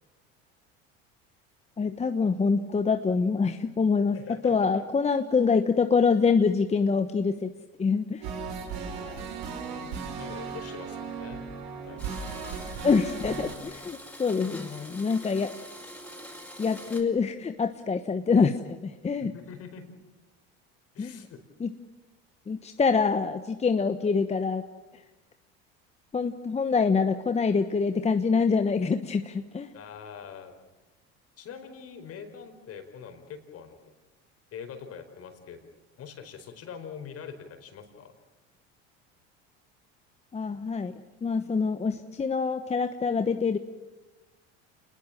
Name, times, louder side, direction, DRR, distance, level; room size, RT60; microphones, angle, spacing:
voice 1, 1.8-4.2 4.4-7.5 7.8-8.3 12.8-15.6 16.6-19.3 21.0-21.2 21.6-21.7 22.5-24.6 24.9-25.0 26.1-29.7 40.3-40.9 41.2-43.6, left 5 dB, 20° left, 8 dB, 1.1 m, -25 dB
voice 2, 4.1-4.7 8.7-9.1 10.2-11.4 11.9-12.0 19.2-19.9 20.9-21.4 29.7-30.5 31.4-33.9 34.5-35.6 36.0-38.1, left 7 dB, 50° left, 7 dB, 4.8 m, -43 dB
sound 1, 8.2-13.5, right 5 dB, 75° right, 6.1 m, -36 dB
Domestic sounds home sounds, 12.0-17.0, equal, 5° left, 5.4 m, -44 dB
28.0 x 20.5 x 7.5 m, 1.1 s
supercardioid pair, 100°, 31 cm